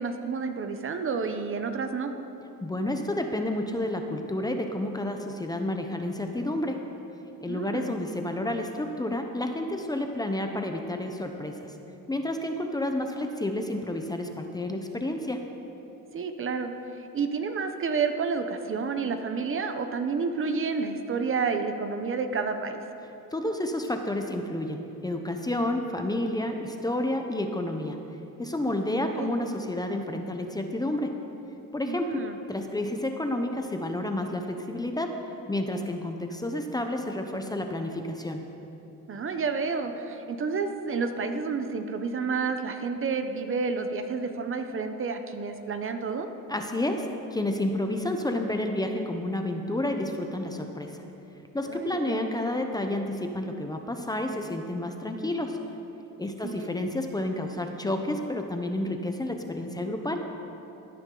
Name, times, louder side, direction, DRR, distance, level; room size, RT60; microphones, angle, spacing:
voice 1, 0.0-2.1 7.5-8.0 16.1-16.7 17.0-22.8 29.2-29.3 31.9-32.4 39.1-46.3 51.7-52.3 56.4-56.6, right 5 dB, 40° right, 7 dB, 0.8 m, -30 dB
voice 2, 2.6-6.8 7.4-11.7 12.1-15.4 23.3-28.0 28.4-31.1 31.7-32.2 32.5-35.1 35.5-38.4 46.5-50.9 51.5-55.6 56.2-60.2, left 1 dB, 10° left, 4 dB, 0.7 m, -30 dB
17.0 x 9.6 x 3.9 m, 3.0 s
cardioid pair, 125°, 33 cm